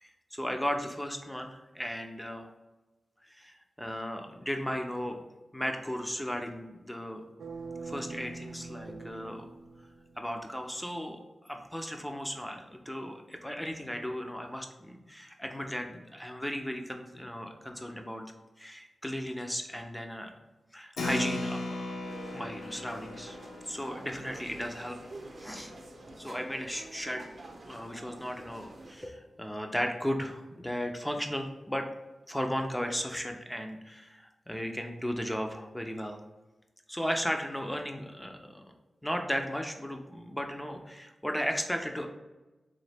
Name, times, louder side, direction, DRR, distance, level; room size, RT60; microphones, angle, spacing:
voice 1, 0.0-2.5 3.2-5.2 5.5-7.2 7.8-9.5 10.2-18.3 18.6-20.3 20.7-22.0 22.3-23.4 23.7-25.0 25.4-25.7 26.2-27.3 27.6-31.9 32.3-36.2 36.9-38.7 39.0-42.1, equal, 5° left, 4 dB, 0.5 m, -35 dB
sound 1, 7.4-10.4, right 3 dB, 80° right, 0.4 m, -43 dB
Keyboard (musical), 21.0-27.0, left 2 dB, 90° left, 0.5 m, -39 dB
sound 2, 22.0-29.1, right 2 dB, 40° right, 0.7 m, -48 dB
4.0 x 3.1 x 3.4 m, 1.1 s
wide cardioid pair, 145°, 0 cm